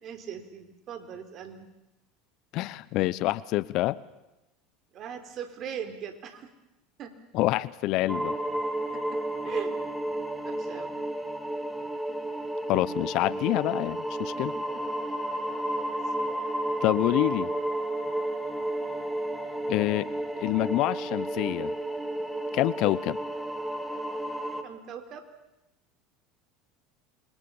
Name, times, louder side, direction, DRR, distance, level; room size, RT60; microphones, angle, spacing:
voice 1, 0.0-1.7 4.9-6.5 7.0-7.1 8.9-9.2 9.4-9.7 10.4-10.9 14.4-14.5 14.7-14.8 15.1-15.2 24.6-25.3, right 8 dB, 45° right, 9 dB, 4.0 m, -40 dB
voice 2, 2.5-4.0 7.3-8.4 12.7-14.5 16.8-17.5 19.7-20.1 20.4-21.7 22.5-23.2, left 17 dB, 60° left, 20 dB, 0.9 m, -26 dB
sound 1, 8.1-24.6, right 1 dB, ahead, 3.0 m, -32 dB
28.0 x 23.5 x 7.2 m, 0.95 s
hypercardioid pair, 90°, 0 cm